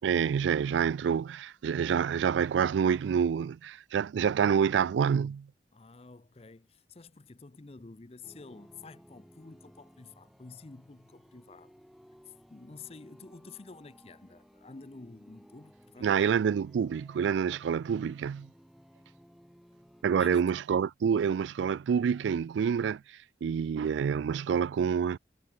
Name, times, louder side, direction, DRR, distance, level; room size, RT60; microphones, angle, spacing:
voice 1, 0.0-5.5 16.0-18.5 20.0-25.2, right 7 dB, 85° right, 0.3 m, -27 dB
voice 2, 5.7-11.7 12.5-16.3 20.2-20.6, left 3 dB, 35° left, 0.6 m, -50 dB
sound 1, 8.2-20.0, equal, ahead, 1.8 m, -58 dB
head